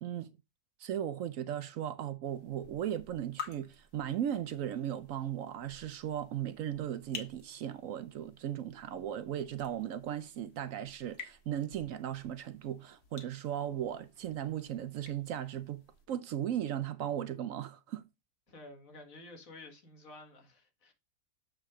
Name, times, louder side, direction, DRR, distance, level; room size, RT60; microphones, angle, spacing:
voice 1, 0.0-0.3 0.8-18.0, right 10 dB, 70° right, 0.9 m, -37 dB
sound 1, 2.3-16.1, left 6 dB, 90° left, 2.0 m, -52 dB
voice 2, 18.5-20.9, left 2 dB, 65° left, 2.1 m, -51 dB
7.7 x 4.9 x 3.6 m
omnidirectional pair, 1.6 m